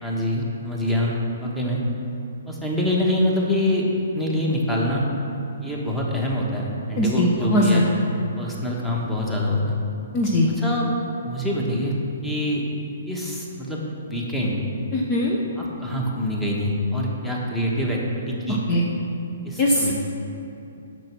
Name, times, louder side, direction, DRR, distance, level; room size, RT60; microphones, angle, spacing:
voice 1, 0.0-1.8 2.5-3.9 4.1-5.1 5.6-7.9 8.4-9.8 10.6-10.9 11.2-11.9 12.2-12.6 13.1-13.8 14.1-14.6 15.6-18.6 19.4-19.9, left 1 dB, 5° left, -3 dB, 1.4 m, -25 dB
voice 2, 7.0-7.8 10.1-10.5 14.9-15.4 18.7-18.8 19.6-19.9, left 1 dB, 30° left, -2 dB, 0.9 m, -20 dB
7.6 x 6.2 x 6.0 m, 2.8 s
hypercardioid pair, 135°, 0 cm